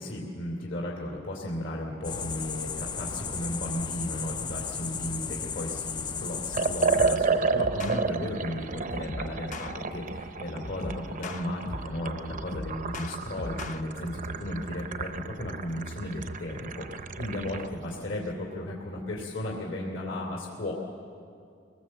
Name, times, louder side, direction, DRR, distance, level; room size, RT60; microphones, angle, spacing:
voice 1, 0.0-20.7, left 1 dB, 65° left, -1 dB, 2.9 m, -35 dB
sound 1, 2.0-7.2, left 6 dB, 20° left, 0.4 m, -34 dB
Liquid, 6.5-17.7, right 4 dB, 40° right, 0.7 m, -31 dB
sound 2, 6.9-7.2 7.6-8.0 8.9-9.7 10.6-12.0 12.3-13.8, left 2 dB, 40° left, 0.8 m, -39 dB
23.0 x 19.0 x 7.6 m, 2.5 s
head